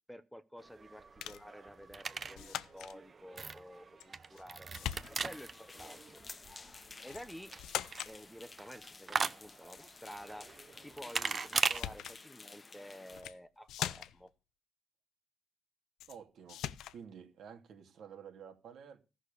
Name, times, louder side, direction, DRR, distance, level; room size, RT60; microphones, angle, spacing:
voice 1, 0.1-6.2 6.6-6.7 7.0-7.5 8.1-10.5 10.8-14.3, equal, ahead, 0.9 m, -51 dB
sound 1, 0.6-11.8, right 5 dB, 35° right, 0.8 m, -40 dB
sound 2, 1.2-1.5 2.4-3.0 4.0-4.5 4.7-5.4 7.1-7.3 7.6-8.2 11.2-11.4 11.7-12.2 13.1-13.4 13.7-14.3 16.0-16.2 16.5-17.0, left 12 dB, 80° left, 0.6 m, -41 dB
sound 3, 4.7-13.2, left 4 dB, 30° left, 1.1 m, -53 dB
voice 2, 16.1-19.0, right 7 dB, 70° right, 2.4 m, -51 dB
14.5 x 6.4 x 6.8 m
cardioid pair, 90°, 0 cm